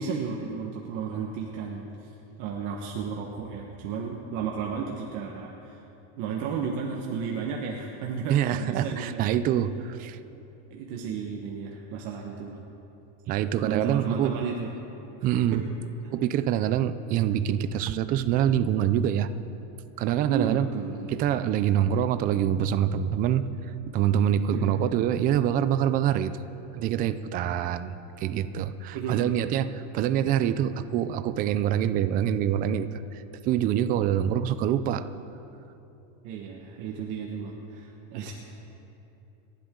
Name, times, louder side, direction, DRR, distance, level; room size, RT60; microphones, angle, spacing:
voice 1, 0.0-2.1 2.4-5.8 6.2-9.4 10.7-12.6 13.6-14.7 15.5-15.7 20.3-21.1 24.5-24.8 28.9-29.5 36.2-38.3, right 6 dB, 50° right, 0 dB, 1.4 m, -33 dB
voice 2, 8.3-10.2 13.3-14.3 15.2-15.6 16.1-19.3 20.0-20.7 21.1-23.4 23.9-26.3 26.7-35.0, right 10 dB, 25° right, 12 dB, 0.3 m, -25 dB
29.0 x 11.5 x 3.8 m, 3.0 s
supercardioid pair, 155°, 38 cm